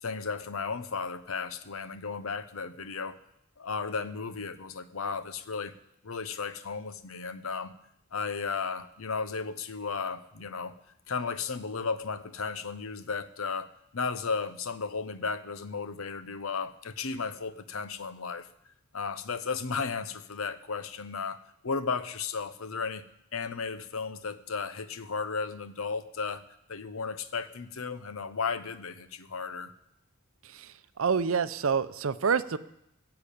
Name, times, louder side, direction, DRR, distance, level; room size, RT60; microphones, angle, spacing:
voice 1, 0.0-3.2 3.6-5.7 6.0-7.7 8.1-10.7 11.1-13.7 13.9-18.5 18.9-21.4 21.6-23.0 23.3-26.4 26.7-29.7, left 5 dB, 80° left, 13 dB, 0.9 m, -34 dB
voice 2, 30.5-32.6, right 6 dB, 70° right, 15 dB, 0.6 m, -28 dB
15.5 x 6.9 x 8.5 m, 0.79 s
head